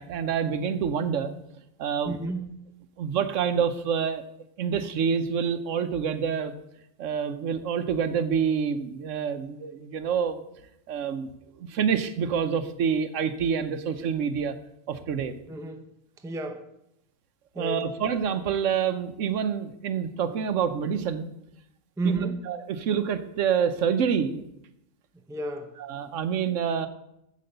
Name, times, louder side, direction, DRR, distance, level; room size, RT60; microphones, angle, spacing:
voice 1, 0.0-1.3 1.8-2.2 3.0-4.2 4.6-6.5 7.0-10.4 10.9-11.3 11.6-14.6 14.9-15.4 17.6-21.3 22.0-24.4 25.8-26.9, right 7 dB, 70° right, 11 dB, 1.0 m, -27 dB
voice 2, 2.0-2.5 15.5-15.8 16.2-16.7 17.5-17.8 22.0-22.4 25.3-25.7, right 3 dB, 5° right, 6 dB, 0.5 m, -31 dB
8.2 x 7.5 x 6.6 m, 0.82 s
omnidirectional pair, 1.4 m